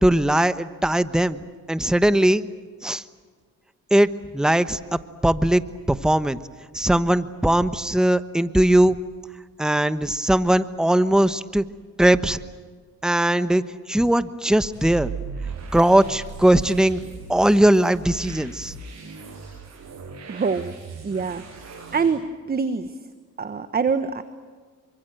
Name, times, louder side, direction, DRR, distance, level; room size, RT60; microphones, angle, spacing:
voice 1, 0.0-1.4 1.7-2.5 2.8-3.0 3.9-5.6 5.9-6.4 6.7-9.0 9.6-11.6 12.0-12.4 13.0-13.6 13.9-15.1 15.7-17.0 17.3-18.8, right 1 dB, ahead, 12 dB, 1.1 m, -19 dB
sound 1, 14.7-22.1, right 4 dB, 60° right, 7.9 m, -38 dB
voice 2, 20.3-20.7 21.0-21.4 21.9-23.0 23.4-24.2, right 5 dB, 30° right, 11 dB, 1.3 m, -25 dB
27.5 x 25.0 x 7.9 m, 1.5 s
cardioid pair, 90°, 30 cm